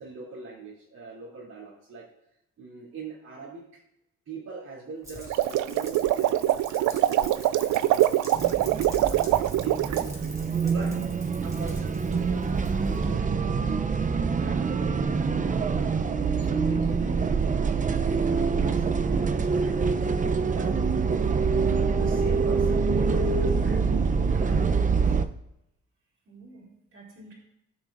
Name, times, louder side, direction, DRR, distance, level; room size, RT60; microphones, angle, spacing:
voice 1, 0.0-2.1 2.6-3.8 4.3-10.9 11.4-13.8 14.3-16.1 16.4-17.3 17.8-20.1 20.4-20.7 21.8-25.2, right 4 dB, 60° right, -7 dB, 2.9 m, -43 dB
Rain, 5.0-13.1, equal, 10° right, 2.6 m, -46 dB
sound 1, 5.2-10.1, right 14 dB, 80° right, 0.5 m, -24 dB
sound 2, 8.3-25.3, right 5 dB, 25° right, 0.6 m, -25 dB
voice 2, 10.8-11.2 16.8-17.4 26.2-27.3, right 1 dB, 45° right, -2 dB, 3.5 m, -44 dB
15.5 x 6.1 x 2.6 m, 0.82 s
cardioid pair, 90°, 30 cm